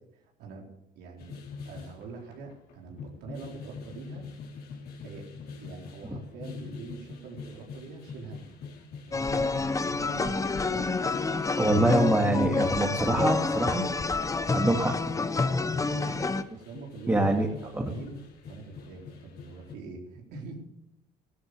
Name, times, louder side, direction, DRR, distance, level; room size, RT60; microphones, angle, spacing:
voice 1, 1.0-1.4 1.6-4.2 5.0-5.2 5.6-8.6 9.1-10.9 11.5-11.8 12.3-12.7 14.7-14.9 15.5-16.2 16.5-18.2 18.5-20.6, right 4 dB, 80° right, 0 dB, 4.3 m, -44 dB
sound 1, 1.2-19.7, left 5 dB, 65° left, 4.4 m, -44 dB
sound 2, 9.1-16.4, left 3 dB, 20° left, 0.8 m, -28 dB
voice 2, 11.6-13.9 14.5-14.9 17.1-17.5 17.7-17.9, right 2 dB, 15° right, 0 dB, 2.2 m, -24 dB
14.0 x 13.5 x 6.9 m, 0.82 s
cardioid pair, 110°, 17 cm